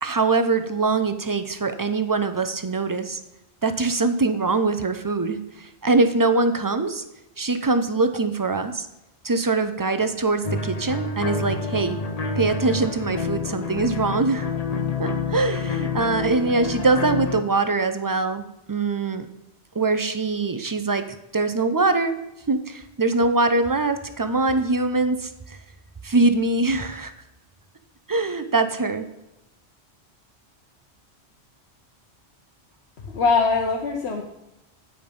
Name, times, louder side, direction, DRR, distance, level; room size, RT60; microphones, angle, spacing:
voice 1, 0.0-3.2 3.6-7.0 7.4-8.9 9.2-12.0 12.4-14.5 15.0-19.3 19.8-21.1 21.3-22.2 22.5-25.6 26.0-27.1 28.1-29.1, right 3 dB, 35° right, 10 dB, 0.3 m, -23 dB
sound 1, 10.4-17.4, left 4 dB, 40° left, 0.7 m, -28 dB
voice 2, 33.0-34.2, left 4 dB, 75° left, 0 dB, 1.1 m, -22 dB
9.2 x 5.1 x 5.2 m, 0.91 s
omnidirectional pair, 1.1 m